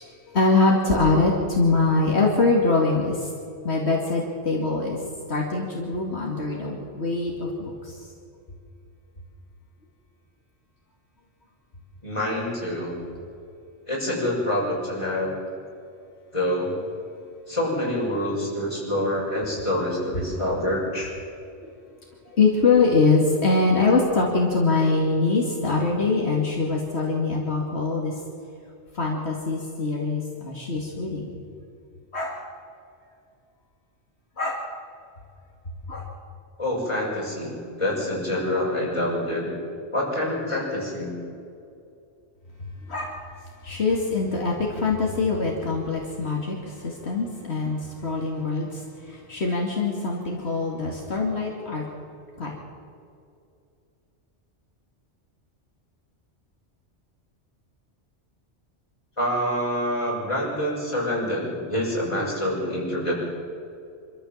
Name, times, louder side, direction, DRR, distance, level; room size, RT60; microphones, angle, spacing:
voice 1, 0.0-3.3 3.6-5.0 5.3-7.9 22.3-28.1 28.9-31.2 32.1-32.3 34.4-34.6 35.9-36.0 42.9-43.1 43.6-51.8 52.4-52.6, left 3 dB, 70° left, -2 dB, 2.7 m, -23 dB
voice 2, 12.0-13.0 13.9-15.3 16.3-16.7 17.5-21.1 36.6-39.5 39.9-41.1 59.2-63.3, left 1 dB, 25° left, -4 dB, 6.3 m, -26 dB
25.5 x 14.0 x 7.4 m, 2.5 s
omnidirectional pair, 1.1 m